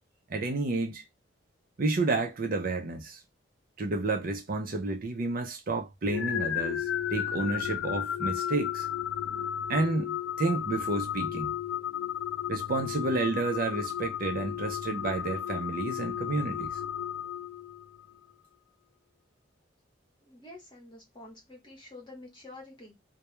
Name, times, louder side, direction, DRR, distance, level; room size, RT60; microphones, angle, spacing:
voice 1, 0.3-1.0 1.8-3.2 3.8-8.9 9.7-11.5 12.5-16.8, right 3 dB, 45° right, 0.5 m, -30 dB
sound 1, 6.1-18.1, left 10 dB, 80° left, 0.3 m, -33 dB
voice 2, 20.2-23.0, left 2 dB, 25° left, 0.9 m, -48 dB
2.2 x 2.1 x 3.0 m
head